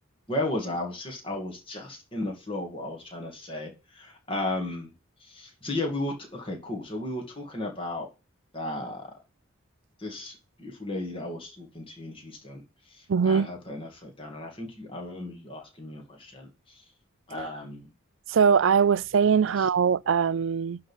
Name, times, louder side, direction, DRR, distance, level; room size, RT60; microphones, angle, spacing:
voice 1, 0.3-4.9 5.2-8.1 8.5-9.1 10.0-16.9 17.3-17.9 19.5-19.7, left 1 dB, 25° left, 2.4 m, -35 dB
voice 2, 13.1-13.5 18.3-20.8, right 6 dB, 60° right, 0.4 m, -21 dB
11.0 x 3.9 x 7.2 m
head